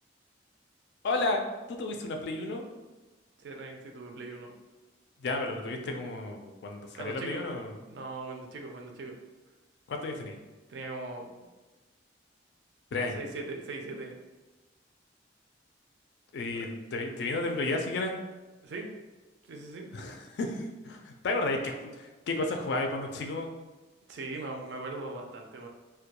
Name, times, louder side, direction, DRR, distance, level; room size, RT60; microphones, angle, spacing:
voice 1, 1.0-2.6 5.2-7.8 9.9-10.4 12.9-13.2 16.3-18.2 19.9-23.5, left 2 dB, 65° left, 4 dB, 0.3 m, -32 dB
voice 2, 3.4-4.5 7.0-7.4 7.8-9.1 10.7-11.5 13.1-14.2 16.5-16.7 18.6-18.9 19.4-19.9 24.1-25.7, right 3 dB, 65° right, 2 dB, 0.4 m, -40 dB
2.2 x 2.2 x 2.8 m, 1.2 s
head